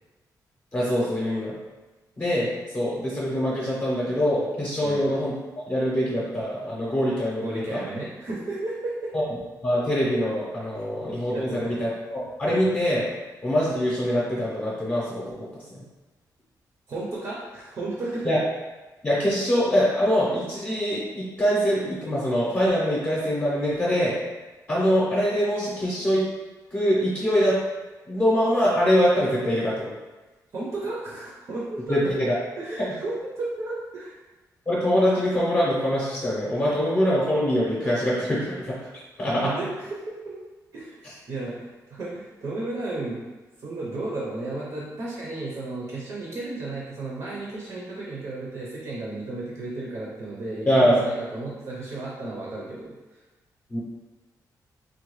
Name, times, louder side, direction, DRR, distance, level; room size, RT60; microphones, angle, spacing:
voice 1, 0.7-1.5 2.2-5.3 5.7-7.8 9.1-9.2 9.6-13.0 13.4-15.8 18.2-18.4 19.0-24.2 24.7-26.2 26.7-27.6 28.1-29.9 31.9-32.4 34.7-38.7 39.2-39.5 50.7-51.0 53.7-53.8, equal, 20° left, -8 dB, 0.7 m, -24 dB
voice 2, 7.4-9.1 11.3-11.8 12.4-12.6 16.9-18.3 30.5-32.0 32.6-34.2 39.3-40.4 40.7-43.2 43.6-52.9, right 2 dB, 55° right, -5 dB, 0.7 m, -33 dB
3.7 x 2.2 x 3.1 m, 1.2 s
wide cardioid pair, 160°, 7 cm